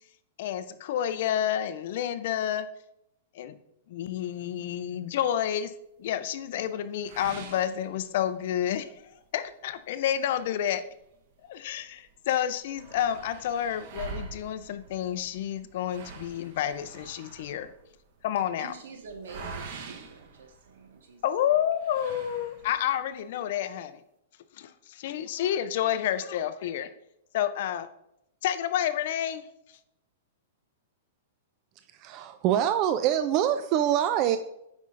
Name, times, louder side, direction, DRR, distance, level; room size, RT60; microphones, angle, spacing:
voice 1, 0.4-2.7 3.4-3.5 3.9-5.7 6.0-9.0 9.3-10.8 11.5-17.7 18.2-18.7 21.2-24.0 24.6-26.9 27.3-27.9 28.4-29.4, left 10 dB, 55° left, 12 dB, 0.5 m, -29 dB
sound 1, 7.0-8.5 8.9-9.0 9.5-9.6 10.4-11.7 12.0-12.1 12.3-21.1 21.8-22.9, right 4 dB, 50° right, 1.0 m, -45 dB
voice 2, 18.6-21.6, right 4 dB, 80° right, 4 dB, 1.4 m, -47 dB
voice 3, 32.0-34.4, right 10 dB, 35° right, 10 dB, 0.3 m, -25 dB
8.2 x 5.2 x 2.5 m, 0.80 s
hypercardioid pair, 145°, 0 cm